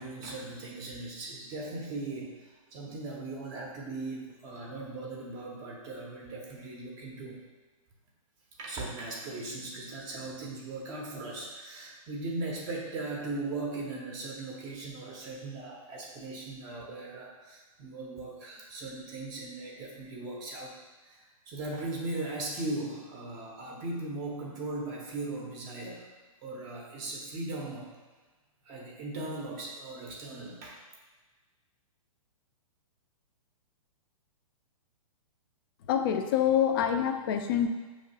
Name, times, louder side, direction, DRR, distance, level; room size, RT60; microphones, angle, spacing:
voice 1, 0.0-7.4 8.6-20.7 21.0-26.1 26.4-27.9 28.6-30.8, right 2 dB, 20° right, -1 dB, 0.5 m, -38 dB
voice 2, 35.9-37.7, left 9 dB, 40° left, 7 dB, 0.4 m, -26 dB
6.1 x 2.9 x 2.8 m, 1.3 s
hypercardioid pair, 150°, 18 cm